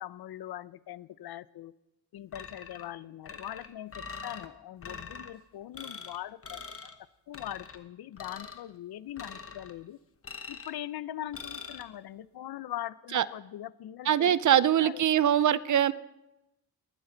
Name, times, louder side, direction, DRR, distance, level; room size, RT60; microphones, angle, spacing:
voice 1, 0.0-1.7 2.1-6.9 7.3-10.0 10.5-15.0, left 12 dB, 75° left, 17 dB, 0.6 m, -41 dB
sound 1, 2.3-2.9 3.3-4.5 4.8-5.3 5.7-6.2 6.4-7.0 7.3-7.8 8.2-8.6 9.2-9.7 10.2-10.8 11.3-11.8, left 5 dB, 35° left, 1.1 m, -43 dB
voice 2, 14.1-15.9, right 10 dB, 50° right, 18 dB, 0.5 m, -23 dB
19.5 x 12.5 x 3.9 m, 0.93 s
wide cardioid pair, 130°, 38 cm